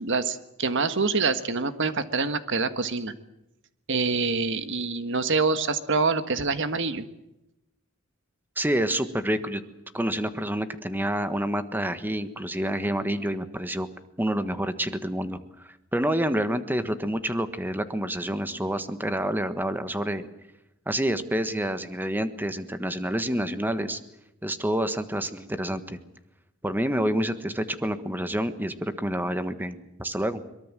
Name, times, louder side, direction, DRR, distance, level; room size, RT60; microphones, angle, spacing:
voice 1, 0.0-3.1 3.9-7.0, right 4 dB, 60° right, 10 dB, 1.6 m, -26 dB
voice 2, 8.6-9.6 9.9-13.9 14.2-20.3 20.9-24.0 24.4-26.0 26.6-30.4, right 1 dB, 10° right, 10 dB, 1.5 m, -28 dB
23.0 x 22.5 x 7.6 m, 0.87 s
head